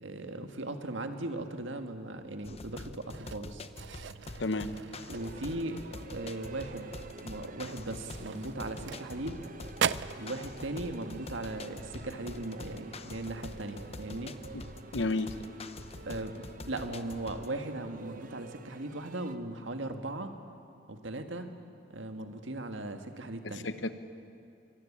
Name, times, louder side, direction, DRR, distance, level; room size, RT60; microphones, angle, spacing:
voice 1, 0.0-3.7 5.1-6.9 7.2-9.4 10.2-14.3 16.0-20.3 20.9-21.5 21.9-23.7, right 2 dB, 90° right, 6 dB, 1.7 m, -38 dB
sound 1, 2.4-17.6, left 2 dB, 35° left, 0.8 m, -46 dB
sound 2, 3.1-5.7 6.1-6.4 6.8-6.9 7.5-9.4 9.7-10.3, right 8 dB, 65° right, 0.4 m, -38 dB
voice 2, 4.4-4.7 14.5-14.6 14.9-15.3 23.4-24.0, left 2 dB, 75° left, 11 dB, 1.1 m, -32 dB
sound 3, 5.1-19.4, right 3 dB, 45° right, 0.9 m, -49 dB
23.0 x 17.5 x 8.6 m, 2.5 s
head